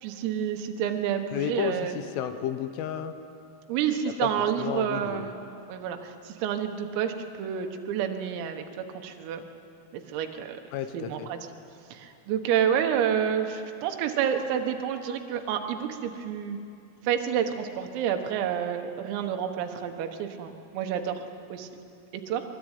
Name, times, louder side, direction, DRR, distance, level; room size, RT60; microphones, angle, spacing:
voice 1, 0.0-2.0 3.7-5.4 5.7-7.1 7.4-9.4 9.9-10.6 10.9-11.4 11.9-16.6 17.1-21.2 21.5-21.7 22.1-22.4, right 8 dB, 80° right, 5 dB, 4.1 m, -29 dB
voice 2, 1.3-3.1 4.2-5.3 10.7-11.3, left 10 dB, 75° left, 9 dB, 3.5 m, -32 dB
24.5 x 23.0 x 9.2 m, 2.6 s
omnidirectional pair, 6.0 m